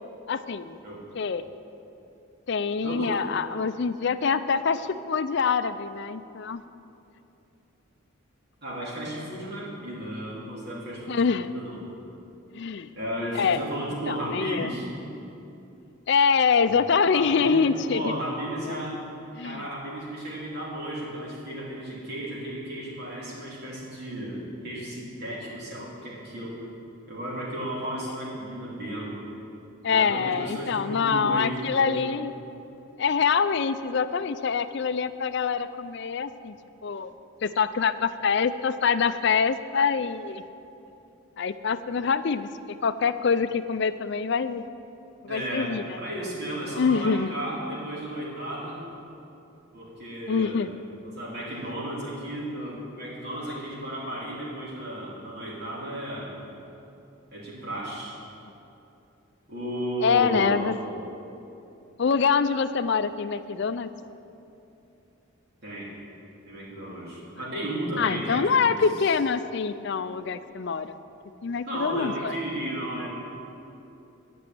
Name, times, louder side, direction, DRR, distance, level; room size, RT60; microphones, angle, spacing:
voice 1, 0.3-0.8 1.1-1.5 2.5-6.6 11.1-11.5 12.5-12.9 13.3-13.6 14.1-14.7 16.1-18.1 19.4-19.6 29.8-32.3 33.0-36.5 36.8-37.1 37.4-40.4 41.4-42.5 42.8-44.6 45.2-45.8 46.8-47.3 50.3-50.7 60.0-60.7 62.0-63.9 68.0-70.9 71.4-72.3, left 5 dB, 55° left, 12 dB, 0.4 m, -25 dB
voice 2, 2.8-3.2 8.6-11.9 12.9-14.9 16.6-16.7 17.1-19.0 19.4-26.5 27.1-29.2 29.9-32.0 45.3-48.8 49.7-50.7 51.0-56.3 57.3-58.2 59.5-60.7 65.6-65.9 66.4-68.8 71.6-73.1, right 1 dB, 50° right, -6 dB, 3.2 m, -34 dB
11.5 x 6.2 x 9.3 m, 2.8 s
head